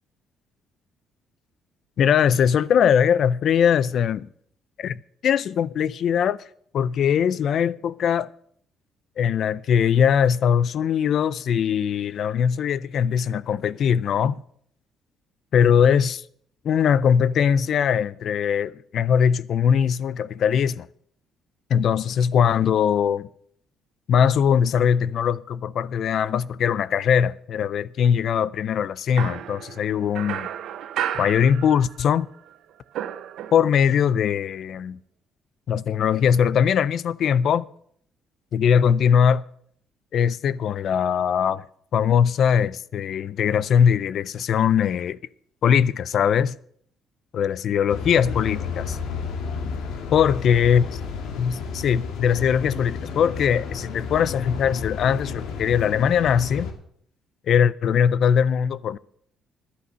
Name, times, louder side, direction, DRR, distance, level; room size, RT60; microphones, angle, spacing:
voice 1, 2.0-4.3 4.8-6.4 6.7-8.3 9.2-14.4 15.5-16.2 16.6-20.9 21.7-23.3 24.1-30.5 31.2-32.3 33.5-35.0 35.7-37.7 38.5-39.4 40.1-41.6 41.9-45.2 45.6-46.5 47.3-49.0 50.1-51.0 51.4-56.7 57.5-59.0, left 8 dB, 55° left, 0.4 m, -21 dB
sound 1, 29.2-32.2 32.5-33.9, right 10 dB, 70° right, 0.6 m, -33 dB
sound 2, 47.9-56.7, left 5 dB, 85° left, 1.8 m, -32 dB
11.5 x 8.1 x 6.2 m
cardioid pair, 145°, 0 cm